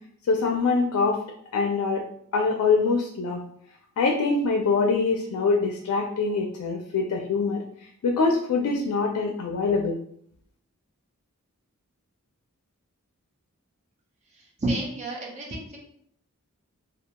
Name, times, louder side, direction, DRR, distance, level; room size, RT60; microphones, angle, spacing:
voice 1, 0.3-1.2 1.5-2.0 2.3-3.4 4.0-7.6 8.0-10.0, left 4 dB, 85° left, 2 dB, 0.4 m, -24 dB
voice 2, 14.4-15.8, right 1 dB, 30° right, -1 dB, 0.5 m, -30 dB
2.3 x 2.2 x 2.8 m, 0.67 s
head